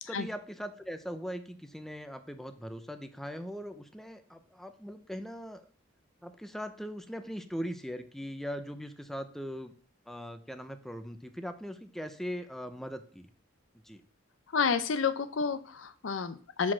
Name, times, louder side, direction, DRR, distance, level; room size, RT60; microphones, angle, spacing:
voice 1, 0.1-5.7 6.2-9.7 10.1-13.3 13.8-14.0, equal, ahead, 9 dB, 0.5 m, -40 dB
voice 2, 14.5-16.7, left 5 dB, 85° left, 13 dB, 0.6 m, -30 dB
5.8 x 4.9 x 6.1 m, 0.44 s
head